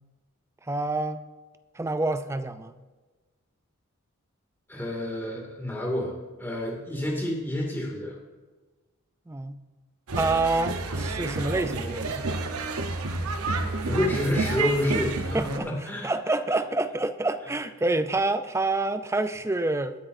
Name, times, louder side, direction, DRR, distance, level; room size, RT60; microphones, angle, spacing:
voice 1, 0.7-1.2 1.7-2.8 9.3-9.6 10.2-12.3 15.3-20.0, right 2 dB, 10° right, 11 dB, 0.4 m, -27 dB
voice 2, 4.7-6.1 6.4-8.1 13.8-16.1, left 1 dB, 10° left, -2 dB, 2.3 m, -28 dB
sound 1, 10.1-15.6, right 3 dB, 90° right, 1.0 m, -30 dB
19.0 x 9.7 x 2.7 m, 1.3 s
head